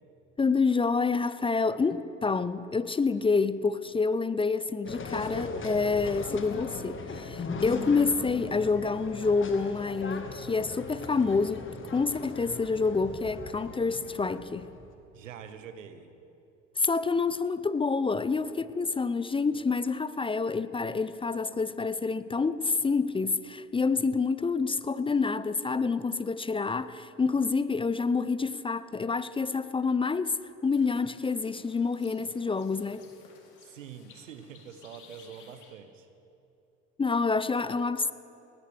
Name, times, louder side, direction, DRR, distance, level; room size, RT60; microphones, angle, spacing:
voice 1, 0.4-14.7 16.8-33.0 37.0-38.1, left 4 dB, 15° left, 0.4 m, -28 dB
sound 1, 4.8-14.9, left 4 dB, 30° left, 1.6 m, -39 dB
voice 2, 15.1-16.2 33.6-36.1, right 7 dB, 90° right, 0.9 m, -45 dB
sound 2, 30.7-35.7, left 5 dB, 55° left, 2.5 m, -56 dB
19.5 x 15.0 x 3.3 m
hypercardioid pair, 60°, 37 cm